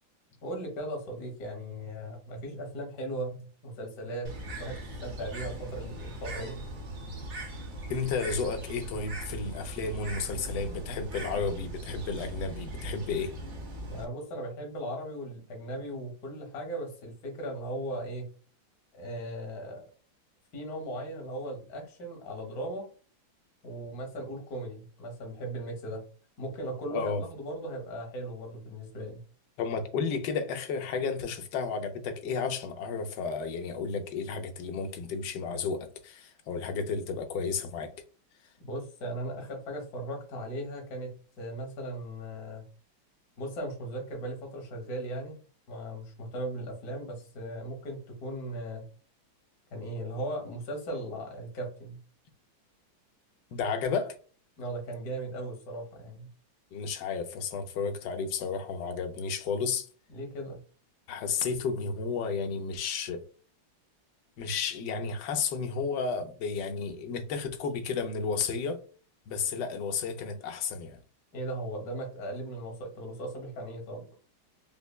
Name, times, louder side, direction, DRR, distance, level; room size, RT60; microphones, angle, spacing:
voice 1, 0.4-4.3 4.6-6.6 13.9-18.3 18.9-19.9 20.5-22.9 23.6-26.0 26.4-29.2 38.6-42.6 43.4-45.4 45.7-48.9 49.7-52.0 54.6-56.3 60.1-60.6 71.3-74.0, right 1 dB, 55° left, 1.4 m, -37 dB
Bird, 4.2-14.0, right 1 dB, 55° right, 0.8 m, -40 dB
voice 2, 7.9-13.3 26.9-27.2 29.6-37.9 53.5-54.1 56.7-59.9 61.1-63.2 64.4-68.8 69.3-71.0, left 5 dB, 70° left, 1.0 m, -32 dB
5.3 x 2.0 x 2.2 m
omnidirectional pair, 2.2 m